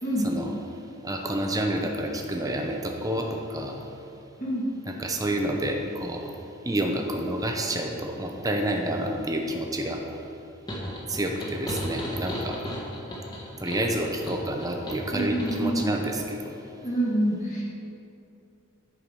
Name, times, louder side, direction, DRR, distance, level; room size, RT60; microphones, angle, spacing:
voice 1, 1.0-3.8 4.9-6.3 6.6-10.0 11.1-12.6 13.6-16.5, right 1 dB, 15° right, 2 dB, 0.8 m, -29 dB
sound 1, 10.7-15.9, equal, 20° left, 1.4 m, -35 dB
voice 2, 15.1-15.8 16.8-17.6, right 1 dB, 35° left, -6 dB, 1.9 m, -26 dB
10.5 x 4.9 x 5.4 m, 2.9 s
head